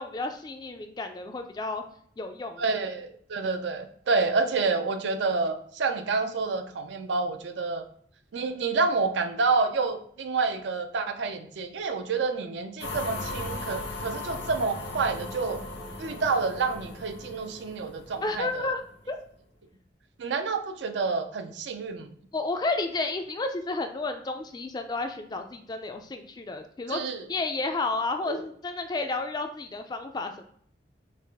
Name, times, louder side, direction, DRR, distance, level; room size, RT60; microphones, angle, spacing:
voice 1, 0.0-1.8 2.2-2.7 18.2-18.8 19.1-19.2 22.3-27.0 27.3-30.4, left 3 dB, 20° left, 6 dB, 0.3 m, -31 dB
voice 2, 2.6-7.9 8.3-15.6 16.0-18.7 20.2-22.1 26.9-27.2 28.3-28.4, right 4 dB, 75° right, 8 dB, 0.4 m, -28 dB
sound 1, 12.8-19.0, left 2 dB, 85° left, 1.3 m, -38 dB
4.7 x 2.4 x 3.4 m, 0.62 s
head